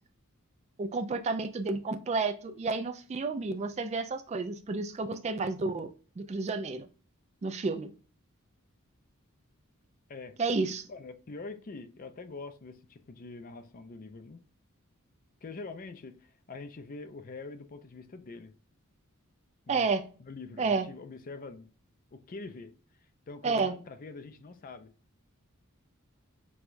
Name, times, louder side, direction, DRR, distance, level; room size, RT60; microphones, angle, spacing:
voice 1, 0.8-6.9 7.4-7.9 10.4-10.9 19.7-20.0 20.6-20.9 23.4-23.7, right 4 dB, 30° right, 0.3 m, -31 dB
voice 2, 10.9-14.4 15.4-18.5 19.7-19.9 20.2-21.7 22.1-22.7 23.3-24.9, left 3 dB, 40° left, 0.4 m, -44 dB
6.1 x 2.3 x 2.5 m
head